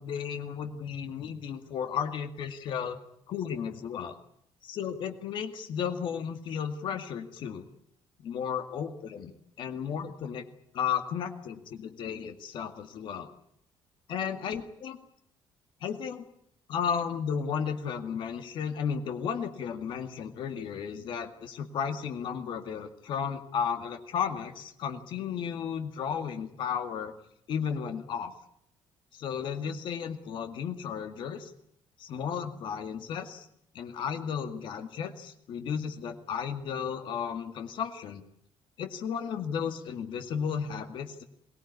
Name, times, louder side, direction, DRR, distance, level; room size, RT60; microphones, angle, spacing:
voice 1, 0.0-3.0 3.3-4.2 4.6-7.6 8.2-9.3 9.6-10.4 10.7-13.3 14.1-15.0 15.8-16.2 16.7-27.1 27.5-28.3 29.1-31.5 32.0-33.5 33.7-38.2 38.8-41.2, left 7 dB, 55° left, 6 dB, 2.1 m, -34 dB
23.0 x 19.0 x 9.7 m, 0.73 s
cardioid pair, 165°, 10 cm